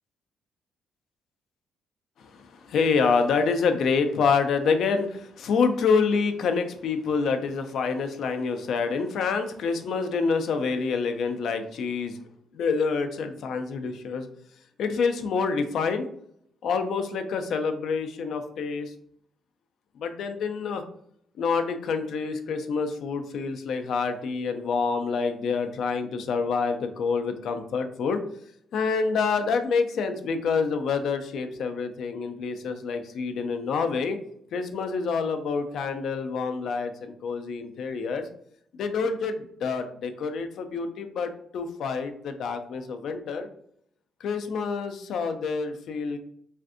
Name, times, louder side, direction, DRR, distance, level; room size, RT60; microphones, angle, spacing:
voice 1, 2.2-12.2 12.5-14.3 14.8-16.1 16.6-18.9 20.0-20.8 21.4-28.2 28.7-34.2 34.5-38.3 38.7-43.5 44.2-46.2, left 5 dB, 70° left, 7 dB, 0.4 m, -27 dB
3.3 x 2.5 x 2.5 m, 0.69 s
cardioid pair, 90°, 0 cm